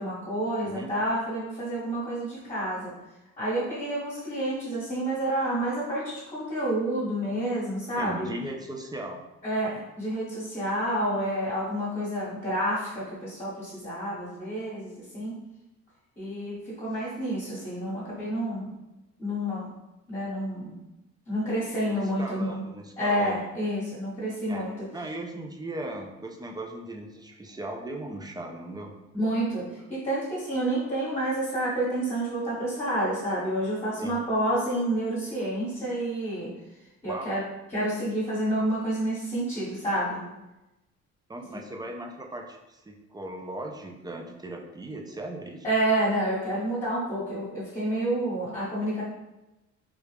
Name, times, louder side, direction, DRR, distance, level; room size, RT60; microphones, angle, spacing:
voice 1, 0.0-2.9 3.4-8.3 9.4-15.4 16.2-18.7 19.2-19.7 20.1-20.8 21.3-22.6 23.0-24.9 29.1-36.5 37.0-37.4 37.7-40.2 45.6-49.0, right 1 dB, 20° left, -10 dB, 1.3 m, -29 dB
voice 2, 8.0-9.2 21.9-23.4 24.5-28.9 34.0-34.2 37.0-37.3 41.3-45.7, right 1 dB, 15° right, 2 dB, 0.4 m, -38 dB
3.2 x 2.3 x 3.3 m, 0.97 s
cardioid pair, 90°, 30 cm